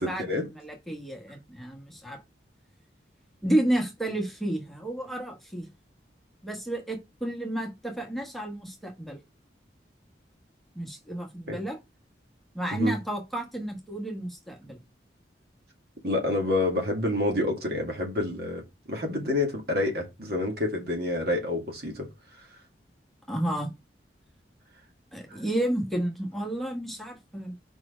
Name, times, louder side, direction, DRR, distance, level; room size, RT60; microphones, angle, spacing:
voice 1, 0.0-2.2 3.4-5.7 6.4-9.2 10.7-11.8 12.5-14.8 23.3-23.7 25.1-27.5, right 1 dB, ahead, 1.2 m, -31 dB
voice 2, 16.0-18.6 18.9-22.1 25.3-25.4, left 2 dB, 55° right, 2.1 m, -28 dB
5.0 x 4.7 x 4.9 m
head